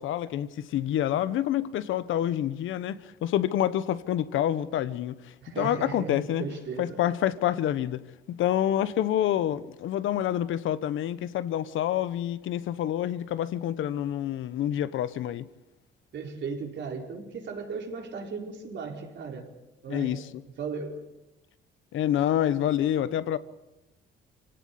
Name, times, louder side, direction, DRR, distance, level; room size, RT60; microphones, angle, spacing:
voice 1, 0.0-6.5 6.8-8.0 8.3-15.5 19.9-20.4 21.9-23.4, left 11 dB, 80° left, 1.2 m, -27 dB
voice 2, 5.4-7.0 16.1-19.5 19.8-20.2 20.6-21.0, right 5 dB, 65° right, 4.6 m, -36 dB
26.0 x 17.5 x 8.5 m
cardioid pair, 90°, 20 cm